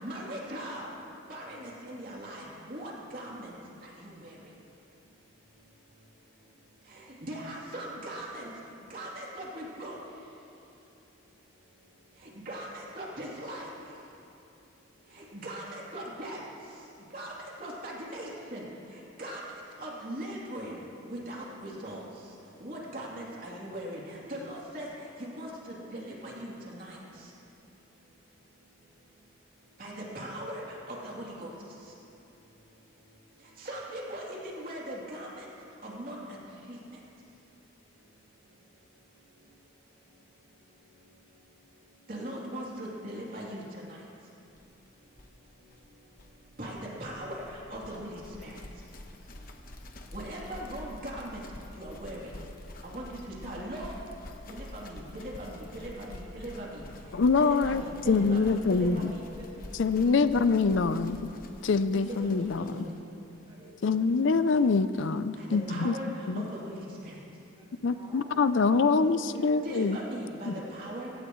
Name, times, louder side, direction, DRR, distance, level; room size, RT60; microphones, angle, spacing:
voice 1, 0.0-0.9 1.3-3.6 3.8-4.3 6.9-8.5 8.9-10.0 12.2-13.7 15.1-16.4 17.1-17.3 17.6-18.7 18.9-19.4 19.8-22.0 22.6-27.0 29.8-31.5 33.6-35.5 35.8-36.2 36.7-36.8 42.1-44.0 46.6-48.6 50.1-51.4 51.7-52.3 52.8-54.0 54.5-56.8 57.4-59.2 62.0-62.8 65.4-67.2 69.6-71.1, right 1 dB, 45° right, -4 dB, 3.1 m, -40 dB
sound 1, 44.6-44.7 44.9-45.0 45.1-63.0, left 1 dB, 45° left, 1.1 m, -47 dB
voice 2, 57.1-59.1 59.8-61.2 61.6-62.8 63.8-65.9 66.3-66.5 67.8-70.0 70.5-70.6, left 4 dB, 75° left, 13 dB, 0.5 m, -25 dB
voice 3, 59.3-60.3 60.9-61.2 63.4-64.1 67.5-69.0 69.2-69.8 70.4-71.2, equal, 25° right, -6 dB, 3.2 m, -50 dB
23.5 x 16.5 x 3.1 m, 2.8 s
head